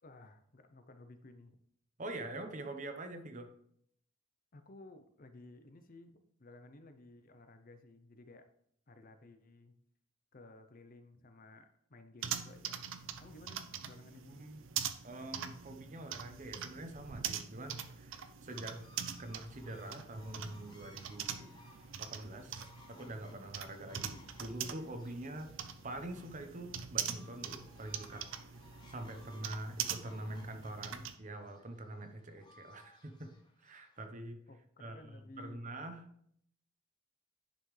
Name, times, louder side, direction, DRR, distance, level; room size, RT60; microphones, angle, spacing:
voice 1, 0.0-1.6 4.5-8.5 8.9-9.7 10.3-12.8 13.2-14.5 34.5-35.6, left 2 dB, 40° left, 8 dB, 0.7 m, -56 dB
voice 2, 2.0-3.5 14.3-14.6 15.0-18.8 19.2-21.5 22.0-25.5 25.8-28.2 28.9-33.3 33.6-34.4 34.8-36.0, right 1 dB, 35° right, 6 dB, 0.9 m, -45 dB
sound 1, 12.2-31.1, right 8 dB, 65° right, 0.6 m, -43 dB
sound 2, 18.4-34.0, left 2 dB, 20° left, 1.1 m, -62 dB
10.5 x 5.8 x 3.3 m, 0.68 s
head